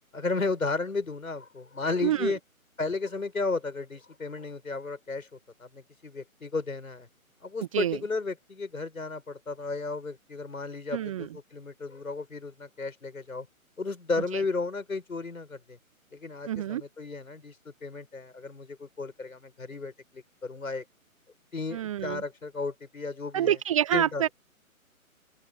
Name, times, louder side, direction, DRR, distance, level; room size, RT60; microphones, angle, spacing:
voice 1, 0.1-2.4 2.8-5.3 5.6-7.1 7.4-13.5 13.8-15.8 16.1-20.8 21.5-23.6 23.9-24.2, left 3 dB, 75° left, 7.9 m, -34 dB
voice 2, 2.0-2.3 7.7-8.0 10.9-11.3 14.3-14.4 16.5-16.8 21.7-22.2 23.3-24.3, right 11 dB, 25° right, 1.2 m, -27 dB
open air
figure-of-eight pair, 140°, 43 cm